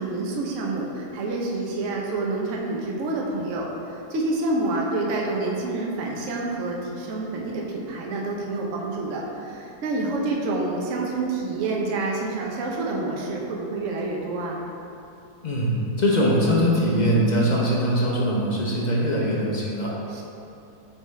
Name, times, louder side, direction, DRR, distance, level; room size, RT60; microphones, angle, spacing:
voice 1, 0.0-14.6 20.1-20.2, right 2 dB, 60° right, -2 dB, 1.0 m, -28 dB
voice 2, 15.4-19.9, equal, 45° left, -4 dB, 0.5 m, -22 dB
8.5 x 3.5 x 3.2 m, 2.8 s
omnidirectional pair, 1.7 m